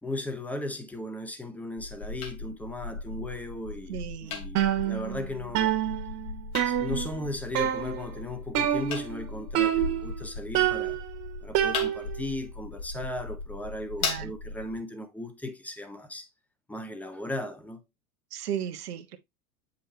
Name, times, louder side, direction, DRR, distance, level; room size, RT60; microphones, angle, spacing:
voice 1, 0.0-5.8 6.6-11.0 11.4-16.3 16.7-17.8, left 1 dB, 5° left, 1.3 m, -37 dB
sound 1, 1.8-14.8, left 4 dB, 70° left, 2.7 m, -38 dB
voice 2, 3.9-4.4 14.0-14.3 18.3-19.2, right 9 dB, 85° right, 1.2 m, -35 dB
sound 2, 4.6-5.3 5.6-7.2 7.6-8.1 8.6-9.2 9.6-10.2 10.6-12.3, right 11 dB, 45° right, 1.8 m, -27 dB
8.0 x 5.5 x 2.8 m
hypercardioid pair, 115°, 45 cm